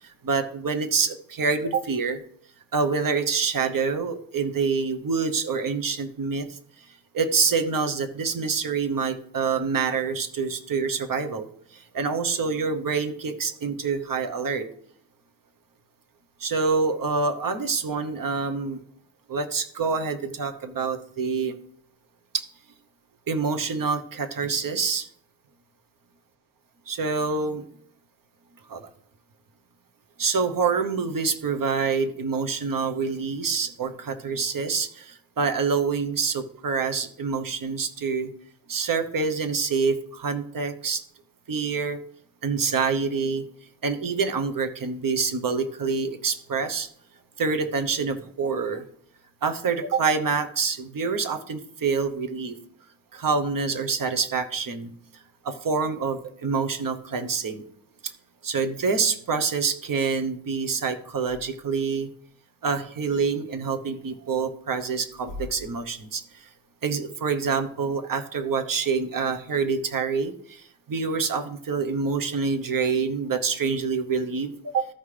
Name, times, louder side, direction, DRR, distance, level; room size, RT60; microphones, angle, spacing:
voice 1, 0.0-2.2 2.7-6.9 7.1-14.7 16.4-18.8 19.3-21.5 22.3-22.4 23.3-25.1 26.9-27.6 28.7-28.8 30.2-38.3 38.7-41.0 41.5-42.0 42.4-43.5 43.8-46.9 47.4-48.8 49.4-52.6 53.1-54.9 55.4-57.6 58.0-58.1 58.4-62.1 62.6-66.5 66.8-74.9, right 5 dB, 50° right, 9 dB, 0.9 m, -26 dB
14.0 x 5.5 x 3.3 m, 0.64 s
wide cardioid pair, 130°, 44 cm